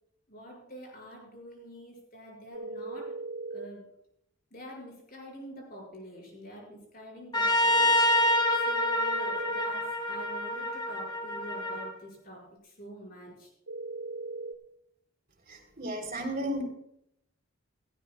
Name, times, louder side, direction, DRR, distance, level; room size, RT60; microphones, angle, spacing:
voice 1, 0.3-3.1 3.5-3.9 4.5-8.4 8.7-13.5, equal, 45° left, -1 dB, 5.9 m, -46 dB
sound 1, 2.5-3.7 7.7-9.7 13.7-14.5, right 3 dB, 75° right, 1.1 m, -38 dB
Trumpet, 7.3-11.9, left 1 dB, 25° left, 2.2 m, -27 dB
voice 2, 15.5-16.6, equal, 45° right, 0 dB, 3.7 m, -34 dB
18.0 x 15.5 x 2.4 m, 0.74 s
head